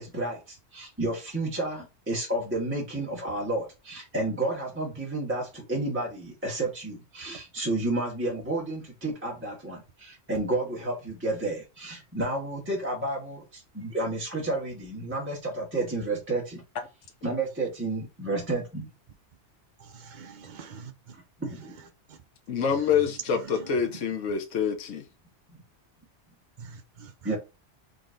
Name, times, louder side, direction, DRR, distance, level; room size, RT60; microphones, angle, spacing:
voice 1, 0.0-16.6 17.2-18.9 21.1-21.7 27.2-27.4, right 2 dB, 10° right, 1.3 m, -31 dB
voice 2, 19.8-21.1 22.1-22.2 26.6-27.1, right 5 dB, 50° right, 0.6 m, -46 dB
voice 3, 22.5-25.1, left 7 dB, 85° left, 1.2 m, -26 dB
3.9 x 3.2 x 3.8 m
omnidirectional pair, 1.3 m